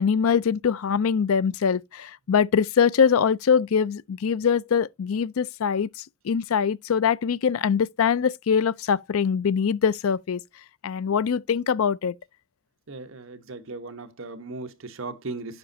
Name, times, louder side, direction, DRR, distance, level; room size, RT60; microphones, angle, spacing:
voice 1, 0.0-5.9 6.2-10.4 10.8-12.1, left 6 dB, 80° left, 0.4 m, -23 dB
voice 2, 12.9-15.6, right 3 dB, 65° right, 1.0 m, -37 dB
9.5 x 6.0 x 2.6 m
head